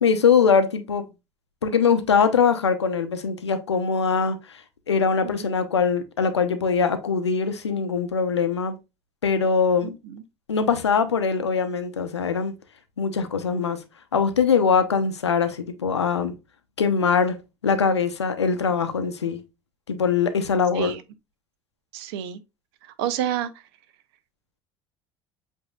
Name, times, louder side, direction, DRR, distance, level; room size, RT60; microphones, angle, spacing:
voice 1, 0.0-1.1 1.6-4.4 4.9-8.8 9.2-9.9 10.5-12.5 13.0-13.8 14.1-16.4 16.8-19.4 19.9-20.9, left 6 dB, 85° left, 0.6 m, -22 dB
voice 2, 9.8-10.2 20.8-21.0 21.9-22.4 23.0-23.5, right 10 dB, 65° right, 0.6 m, -29 dB
7.8 x 2.7 x 2.3 m
figure-of-eight pair, 60°, 14 cm